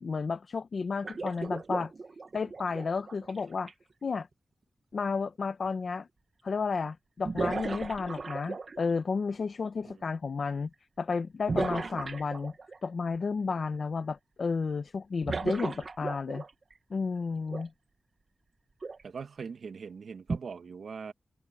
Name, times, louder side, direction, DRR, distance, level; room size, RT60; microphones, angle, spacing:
voice 1, 0.0-1.9 2.3-3.7 4.0-4.3 4.9-6.1 6.4-10.7 11.0-12.5 12.8-16.4 16.9-17.7, left 4 dB, 60° left, 0.8 m, -32 dB
sound 1, 1.0-3.7 5.6-5.7 7.2-9.0 11.5-12.8 15.2-16.7 17.5-17.6 18.8-19.0 20.3-20.4, right 4 dB, 45° right, 1.0 m, -35 dB
voice 2, 19.0-21.1, right 5 dB, 80° right, 1.7 m, -41 dB
wide cardioid pair, 140°, 0 cm